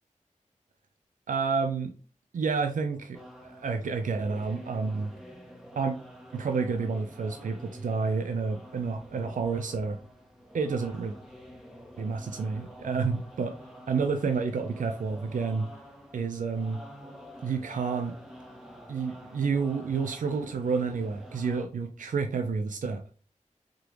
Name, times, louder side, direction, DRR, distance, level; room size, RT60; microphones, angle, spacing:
voice 1, 1.3-1.9 2.3-5.1 5.8-6.0 6.3-10.0 10.5-11.1 12.0-13.6 13.9-15.7 16.1-16.8 17.4-18.2 18.9-23.0, right 5 dB, 90° right, 6 dB, 0.4 m, -29 dB
sound 1, 3.1-21.6, equal, 5° right, 0.9 m, -48 dB
3.7 x 3.3 x 3.0 m, 0.38 s
wide cardioid pair, 60°, 13 cm